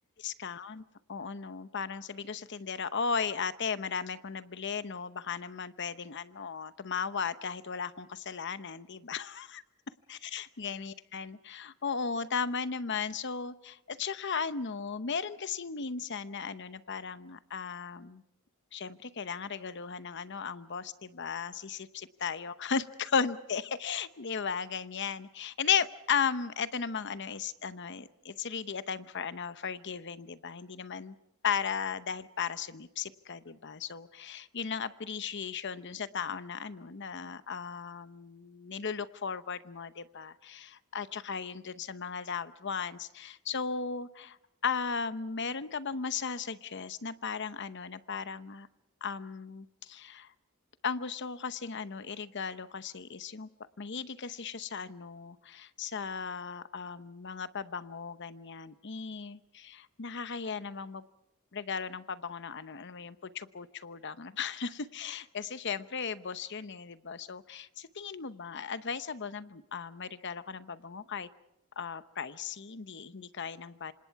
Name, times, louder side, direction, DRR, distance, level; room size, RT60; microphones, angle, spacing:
voice 1, 0.2-0.8 1.1-9.6 10.1-18.2 18.7-31.2 31.4-44.4 44.6-48.7 49.0-50.3 50.8-53.5 53.8-61.0 61.5-71.3 71.8-73.9, left 6 dB, 55° left, 13 dB, 0.8 m, -36 dB
27.5 x 26.0 x 4.7 m, 0.84 s
head